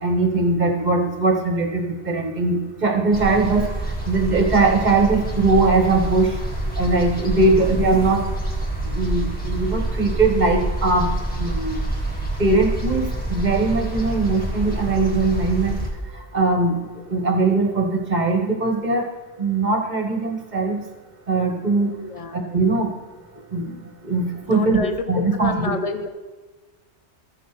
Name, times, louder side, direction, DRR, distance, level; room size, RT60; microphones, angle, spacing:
voice 1, 0.0-3.6 4.0-6.4 6.8-8.2 8.8-11.1 11.4-11.8 12.4-15.7 16.1-16.8 17.1-19.1 19.4-20.8 21.3-21.9 22.3-22.9 23.5-23.8 24.0-24.8 25.1-25.8, right 3 dB, 40° right, 3 dB, 1.4 m, -20 dB
sound 1, 3.1-15.9, right 1 dB, 10° left, 1.8 m, -27 dB
voice 2, 22.0-22.4 24.4-26.1, left 4 dB, 40° left, 7 dB, 0.7 m, -29 dB
14.0 x 7.8 x 3.3 m, 1.3 s
omnidirectional pair, 1.2 m